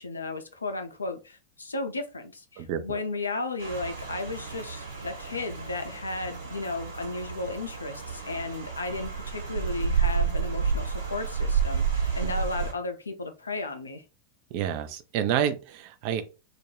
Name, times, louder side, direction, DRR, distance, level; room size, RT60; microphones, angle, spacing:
voice 1, 0.0-14.0, left 3 dB, 75° left, 0.5 m, -34 dB
voice 2, 2.6-3.0 12.2-12.3 14.5-16.2, right 9 dB, 45° right, 0.4 m, -29 dB
Rain, 3.6-12.7, right 6 dB, 70° right, 1.1 m, -30 dB
2.3 x 2.2 x 3.1 m
figure-of-eight pair, 90°, 0 cm